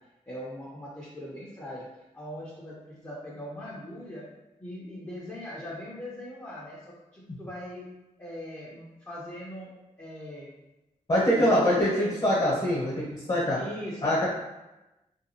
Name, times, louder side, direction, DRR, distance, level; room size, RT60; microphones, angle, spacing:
voice 1, 0.3-1.9 2.1-4.2 4.6-6.8 7.1-7.9 8.2-10.5 11.3-12.5 13.6-14.3, equal, 15° left, -7 dB, 0.7 m, -40 dB
voice 2, 11.1-13.6 14.0-14.3, equal, 40° left, -6 dB, 1.1 m, -24 dB
2.6 x 2.3 x 2.8 m, 0.99 s
cardioid pair, 50°, 14 cm